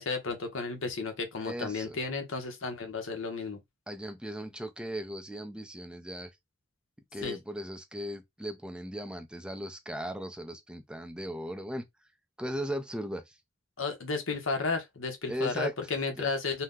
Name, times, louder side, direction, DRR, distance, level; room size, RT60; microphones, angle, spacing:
voice 1, 0.0-3.6 7.2-7.4 13.8-16.6, left 4 dB, 70° left, 0.8 m, -33 dB
voice 2, 1.4-2.0 3.9-6.3 7.1-11.8 12.4-13.4 15.3-15.7 16.2-16.3, equal, 5° right, 0.4 m, -37 dB
2.8 x 2.0 x 3.5 m
head